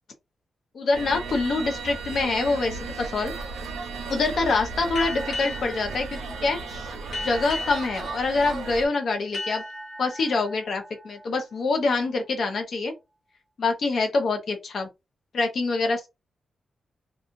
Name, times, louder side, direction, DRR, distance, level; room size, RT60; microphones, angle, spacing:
voice 1, 0.7-3.3 4.1-6.9 7.2-9.6 10.0-12.9 13.6-14.9 15.3-16.1, left 3 dB, 60° left, 0.6 m, -25 dB
sound 1, 0.9-8.8, right 4 dB, 85° right, 0.8 m, -35 dB
sound 2, 5.0-12.2, left 2 dB, 75° left, 1.4 m, -38 dB
2.9 x 2.2 x 2.6 m
wide cardioid pair, 150°, 0 cm